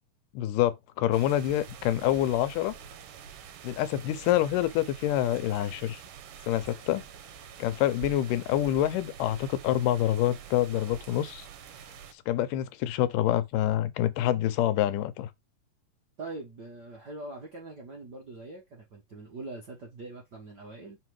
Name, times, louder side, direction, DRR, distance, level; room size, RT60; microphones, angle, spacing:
voice 1, 0.3-2.7 3.6-6.0 6.5-7.1 7.6-11.5 12.3-15.3, left 13 dB, 90° left, 2.3 m, -26 dB
sound 1, 1.1-12.1, right 7 dB, 80° right, 2.5 m, -46 dB
voice 2, 16.2-21.0, right 2 dB, 65° right, 1.0 m, -42 dB
5.7 x 3.6 x 4.7 m
omnidirectional pair, 3.7 m